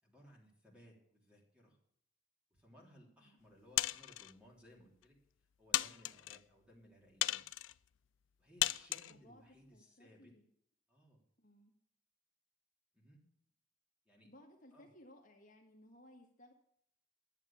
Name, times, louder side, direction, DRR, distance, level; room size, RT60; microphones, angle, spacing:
voice 1, 0.0-1.8 2.5-5.2 5.6-7.5 8.4-10.3 10.9-11.2 12.9-13.3 14.0-14.3 14.7-14.9, equal, 5° right, -2 dB, 3.3 m, -62 dB
sound 1, 3.8-4.3 5.0-5.1 5.7-6.4 7.2-7.7 8.6-9.1, left 15 dB, 85° left, 0.4 m, -35 dB
voice 2, 9.1-10.5 11.4-11.7 14.2-16.5, left 1 dB, 45° left, 1 dB, 1.7 m, -61 dB
11.5 x 7.4 x 8.6 m, 0.69 s
head